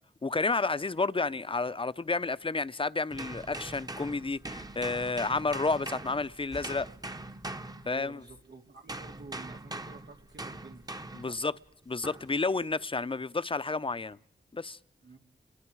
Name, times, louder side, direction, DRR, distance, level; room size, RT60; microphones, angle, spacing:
voice 1, 0.2-6.9 7.9-8.2 11.2-11.5 11.9-14.2 14.5-14.8, left 3 dB, 30° left, 0.8 m, -31 dB
sound 1, 3.1-8.4 8.9-11.4 12.0-12.3, right 2 dB, 20° right, 1.1 m, -42 dB
voice 2, 7.8-10.8 11.1-11.4 15.0-15.2, right 4 dB, 85° right, 3.3 m, -50 dB
30.0 x 22.5 x 4.8 m
cardioid pair, 55°, 18 cm